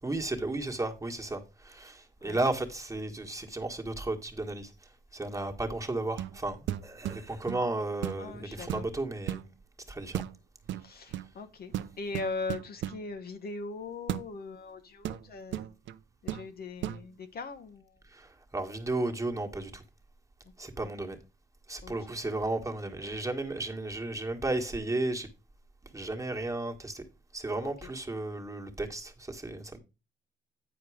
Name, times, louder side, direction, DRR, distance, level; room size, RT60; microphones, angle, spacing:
voice 1, 0.0-9.4 9.9-10.3 18.0-19.8 20.6-21.2 21.7-25.3 25.9-27.0 27.3-29.8, right 2 dB, 15° right, 1.6 m, -34 dB
sound 1, 6.1-6.4 6.7-7.7 8.0-8.3 8.7-9.5 10.1-10.4 10.7-11.3 11.7-13.0 14.1-14.3 15.0-16.0 16.3-16.5 16.8-17.0, right 12 dB, 70° right, 0.6 m, -35 dB
voice 2, 8.2-8.8 10.0-10.1 10.8-15.7 16.2-17.9 21.8-21.9 27.6-27.9, left 3 dB, 50° left, 1.0 m, -40 dB
9.1 x 4.6 x 4.9 m
cardioid pair, 90°, 20 cm